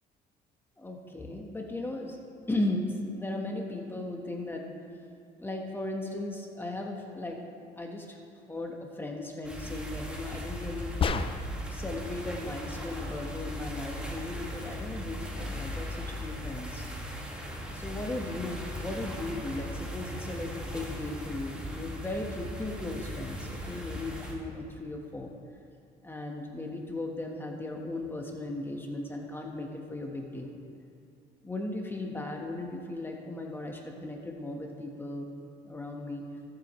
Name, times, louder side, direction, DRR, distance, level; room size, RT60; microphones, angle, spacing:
voice 1, 0.8-2.2 2.5-4.7 5.4-7.4 7.8-8.2 8.5-10.9 11.7-16.9 17.7-25.3 26.0-30.5 31.4-35.3 35.6-36.3, left 2 dB, 15° left, 1 dB, 1.3 m, -36 dB
sound 1, 9.4-24.3, equal, 5° right, 2.0 m, -38 dB
sound 2, 11.0-11.7, left 5 dB, 30° left, 0.5 m, -29 dB
21.5 x 7.7 x 3.1 m, 2.6 s
cardioid pair, 110°, 17 cm